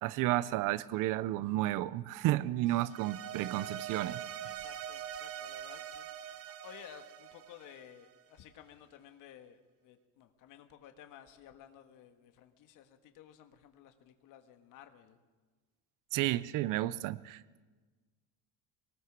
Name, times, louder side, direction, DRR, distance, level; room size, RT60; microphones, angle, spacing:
voice 1, 0.0-4.2 16.1-17.6, right 15 dB, 55° right, 19 dB, 0.6 m, -32 dB
sound 1, 2.9-8.2, right 10 dB, 35° right, 1.0 m, -43 dB
voice 2, 4.4-15.2, left 10 dB, 50° left, 8 dB, 1.7 m, -55 dB
22.5 x 19.0 x 7.4 m, 1.3 s
cardioid pair, 170°, 39 cm